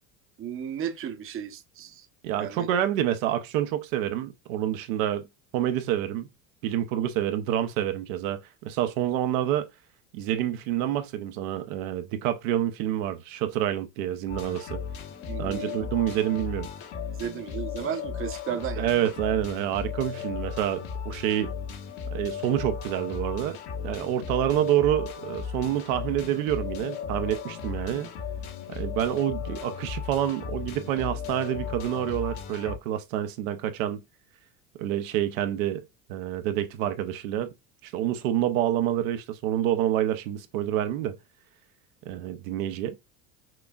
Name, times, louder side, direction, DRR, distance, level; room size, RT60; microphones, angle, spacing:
voice 1, 0.4-2.1 2.4-2.7 15.3-15.8 17.2-18.9, right 9 dB, 30° right, 0.7 m, -34 dB
voice 2, 2.2-5.3 5.5-6.3 6.6-9.7 10.1-14.8 15.4-16.7 18.8-21.5 22.1-23.6 23.8-28.1 28.7-34.0 34.8-35.8 36.1-37.5 37.8-41.2 42.1-43.0, right 11 dB, 75° right, 0.7 m, -27 dB
sound 1, 14.3-32.8, left 7 dB, 65° left, 1.3 m, -36 dB
5.9 x 2.4 x 2.3 m
hypercardioid pair, 90°, 41 cm